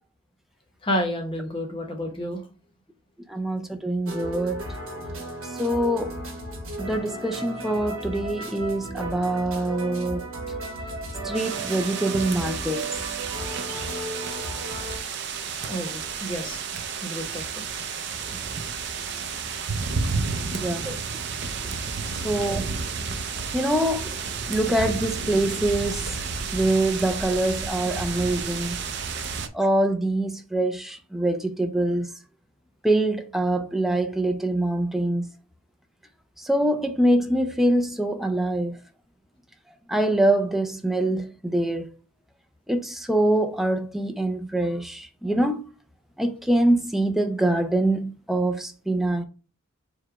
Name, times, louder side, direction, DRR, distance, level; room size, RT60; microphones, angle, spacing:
voice 1, 0.8-2.4 15.6-16.6 17.0-17.5, equal, 25° left, 0.8 m, -30 dB
voice 2, 3.3-4.6 5.6-6.1 6.8-10.3 11.2-12.9 20.5-20.9 22.2-22.8 23.5-24.1 24.5-26.1 26.5-28.8 29.5-32.1 32.8-35.3 36.4-38.8 39.9-41.9 42.7-45.6 46.2-49.2, right 1 dB, ahead, 0.4 m, -24 dB
sound 1, 4.0-15.0, right 2 dB, 70° right, 1.4 m, -34 dB
sound 2, 11.3-29.5, right 5 dB, 50° right, 0.5 m, -31 dB
4.8 x 2.2 x 4.6 m
head